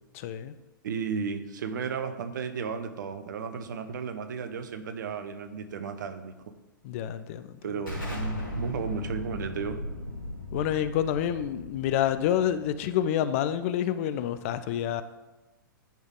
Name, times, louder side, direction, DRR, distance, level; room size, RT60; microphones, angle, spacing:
voice 1, 0.1-0.5 6.8-7.6 10.5-15.0, left 10 dB, 40° left, 12 dB, 0.4 m, -28 dB
voice 2, 0.8-6.3 7.6-9.9, right 6 dB, 60° right, 9 dB, 0.7 m, -34 dB
Explosion, 7.9-13.3, left 1 dB, 80° left, 2.4 m, -37 dB
10.0 x 3.5 x 3.7 m, 1.1 s
figure-of-eight pair, 110°, 11 cm